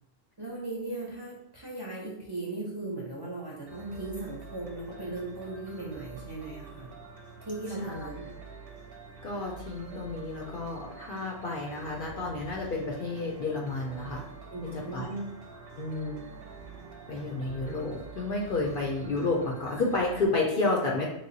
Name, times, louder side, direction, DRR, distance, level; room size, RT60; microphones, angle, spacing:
voice 1, 0.4-6.9 7.4-8.3 14.5-15.3, right 2 dB, 25° right, -5 dB, 0.6 m, -37 dB
sound 1, 3.7-20.3, right 4 dB, 60° right, 0.7 m, -47 dB
voice 2, 9.2-14.3 14.7-15.1 15.8-16.3 17.1-21.1, left 2 dB, 55° left, -2 dB, 0.7 m, -31 dB
3.1 x 2.1 x 3.9 m, 0.79 s
omnidirectional pair, 1.2 m